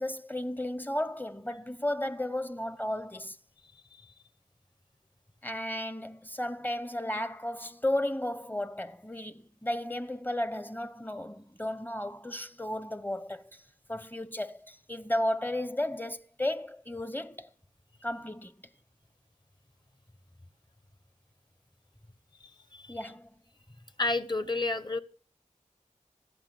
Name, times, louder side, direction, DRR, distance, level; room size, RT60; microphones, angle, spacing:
voice 1, 0.0-3.4 5.4-13.6 13.9-17.5 18.0-18.5 22.9-23.3, left 1 dB, 15° left, 1.0 m, -34 dB
voice 2, 22.4-22.9 24.0-25.0, left 2 dB, 30° left, 1.4 m, -31 dB
16.0 x 11.5 x 5.9 m
wide cardioid pair, 40°, 14 cm